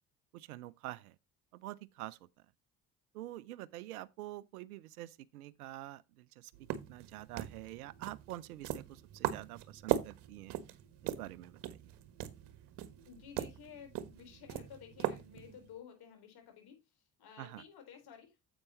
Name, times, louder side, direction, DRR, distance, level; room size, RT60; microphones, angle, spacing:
voice 1, 0.3-1.2 1.5-2.2 3.1-6.5 6.9-10.6 11.0-11.9 17.4-17.6, right 15 dB, 85° right, 0.6 m, -46 dB
sound 1, 6.5-15.7, right 12 dB, 65° right, 1.2 m, -40 dB
voice 2, 13.1-18.4, left 8 dB, 60° left, 4.3 m, -54 dB
9.6 x 8.0 x 3.0 m
hypercardioid pair, 55°, 43 cm